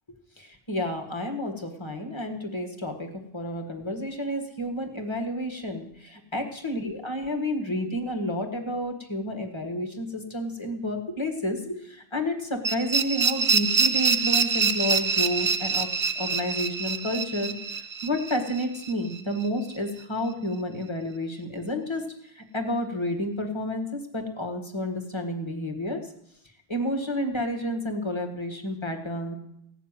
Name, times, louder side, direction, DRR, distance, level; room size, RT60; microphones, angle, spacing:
voice 1, 0.4-15.9 16.2-26.1 26.7-29.3, left 1 dB, 25° left, 4 dB, 1.8 m, -30 dB
sound 1, 12.6-19.5, right 5 dB, 50° right, 0.8 m, -25 dB
16.5 x 7.0 x 9.1 m, 0.77 s
omnidirectional pair, 1.0 m